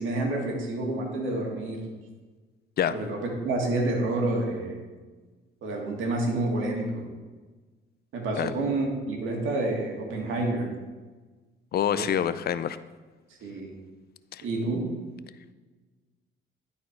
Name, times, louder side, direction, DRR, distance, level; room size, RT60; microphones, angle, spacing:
voice 1, 0.0-1.8 2.9-3.2 3.4-4.8 5.6-7.1 8.1-10.7 11.9-12.2 13.4-13.7 14.4-14.8, right 2 dB, 80° right, 0 dB, 1.9 m, -28 dB
voice 2, 11.7-12.8 14.3-14.4, left 9 dB, 55° left, 14 dB, 0.4 m, -26 dB
11.5 x 4.3 x 4.5 m, 1.3 s
cardioid pair, 90°, 20 cm